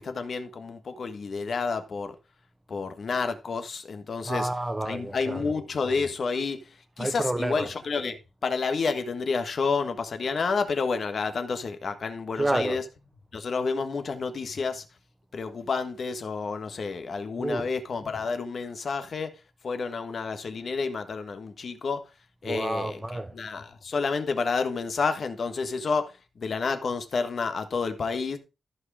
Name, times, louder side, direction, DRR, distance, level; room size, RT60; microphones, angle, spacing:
voice 1, 0.0-2.1 2.7-4.5 4.8-12.8 13.3-14.8 15.3-19.3 19.6-22.0 22.4-23.0 23.3-28.4, left 4 dB, 50° left, 1.5 m, -30 dB
voice 2, 4.2-5.4 7.0-7.7 12.4-12.8 17.4-17.7 22.4-23.3, right 2 dB, 15° right, 0.5 m, -29 dB
14.5 x 4.9 x 4.8 m
wide cardioid pair, 155°, 0 cm